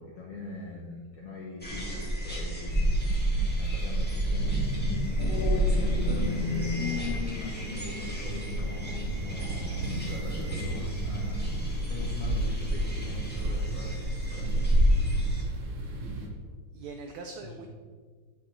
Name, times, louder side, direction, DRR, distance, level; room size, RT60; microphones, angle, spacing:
voice 1, 0.0-2.9 3.6-4.6 5.3-14.9 16.2-16.3 17.6-17.7, left 2 dB, 65° left, -4 dB, 1.6 m, -42 dB
sound 1, 1.6-15.4, right 1 dB, 10° left, 0.5 m, -29 dB
sound 2, 2.7-16.3, right 2 dB, 65° right, 1.9 m, -36 dB
voice 2, 5.1-5.5 16.7-17.7, right 3 dB, 85° right, 4 dB, 1.7 m, -43 dB
sound 3, 5.2-13.9, left 6 dB, 85° left, 2.5 m, -38 dB
8.3 x 5.9 x 4.6 m, 1.5 s
omnidirectional pair, 3.9 m